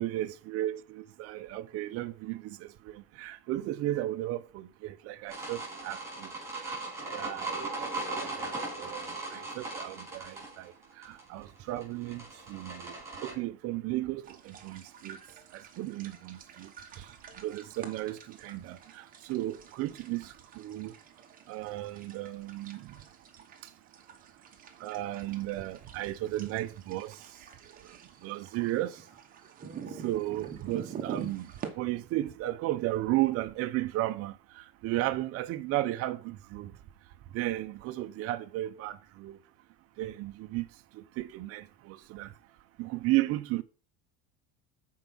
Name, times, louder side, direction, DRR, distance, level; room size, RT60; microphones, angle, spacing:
voice 1, 0.0-6.3 6.6-6.8 7.1-15.2 15.5-21.0 21.5-23.1 23.6-23.7 24.8-29.0 29.9-36.8 37.3-39.4 40.0-40.7 40.9-42.3 42.8-43.6, right 16 dB, 45° right, 0.7 m, -35 dB
sound 1, 5.3-13.3, right 3 dB, 10° right, 4.9 m, -38 dB
sound 2, 14.2-31.7, right 7 dB, 25° right, 1.1 m, -47 dB
7.5 x 4.7 x 5.4 m
cardioid pair, 150°, 33 cm